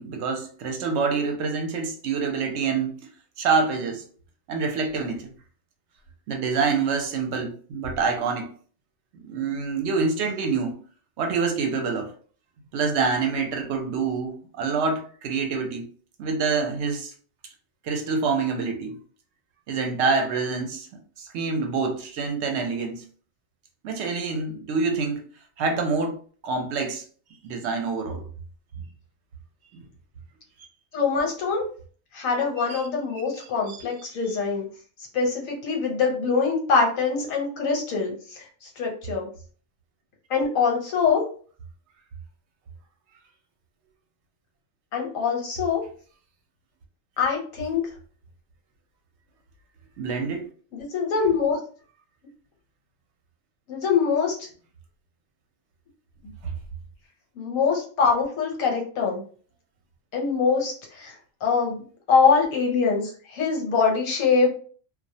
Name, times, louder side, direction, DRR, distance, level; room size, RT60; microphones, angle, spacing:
voice 1, 0.0-3.1 3.4-4.0 4.5-5.3 6.3-8.5 9.1-10.7 11.2-12.1 12.7-15.9 16.2-17.1 17.8-19.0 19.7-20.9 21.2-23.0 23.8-25.3 25.6-27.0 27.4-28.2 29.7-29.8 32.7-32.8 33.1-33.8 50.0-50.5 56.4-56.5, right 4 dB, 65° right, 0.8 m, -26 dB
voice 2, 30.9-31.6 32.1-34.6 35.1-39.3 40.3-41.2 44.9-45.8 47.2-47.9 50.7-51.6 53.7-54.5 57.4-59.2 60.1-61.1 61.4-61.8 62.1-64.5, left 5 dB, 90° left, 1.2 m, -23 dB
2.4 x 2.0 x 2.6 m
omnidirectional pair, 1.3 m